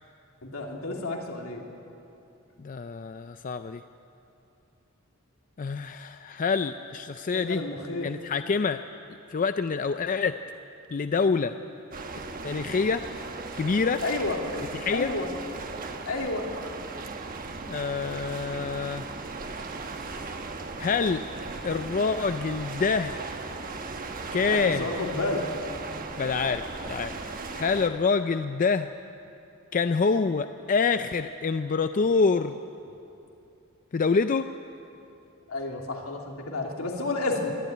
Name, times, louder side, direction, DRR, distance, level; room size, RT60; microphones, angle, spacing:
voice 1, 0.4-1.6 7.3-8.1 14.0-14.4 14.9-15.3 16.0-16.5 24.5-25.5 35.5-37.5, left 2 dB, 80° left, 0 dB, 2.7 m, -31 dB
voice 2, 2.6-3.8 5.6-7.6 8.0-8.8 9.3-10.4 10.9-11.5 12.4-13.1 13.5-14.0 14.8-15.1 17.7-19.0 20.1-20.2 20.8-21.2 21.6-23.2 24.3-24.9 26.2-27.2 27.5-28.9 29.7-32.6 33.9-34.5, left 4 dB, 40° left, 10 dB, 0.4 m, -26 dB
sound 1, 11.9-27.9, right 3 dB, 40° right, 1.2 m, -37 dB
22.0 x 12.5 x 9.4 m, 2.7 s
head